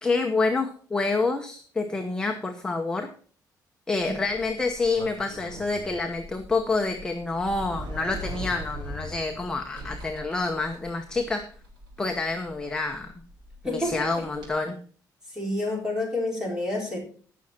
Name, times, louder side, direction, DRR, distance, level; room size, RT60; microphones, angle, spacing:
voice 1, 0.0-3.1 3.9-11.4 12.0-13.1 13.6-14.8, left 3 dB, 10° left, 3 dB, 0.9 m, -27 dB
Sliding door, 3.9-14.5, equal, 90° right, 5.1 m, -41 dB
voice 2, 15.3-17.0, left 1 dB, 10° right, -1 dB, 4.2 m, -28 dB
18.0 x 6.4 x 4.3 m, 0.44 s
cardioid pair, 180°, 7 cm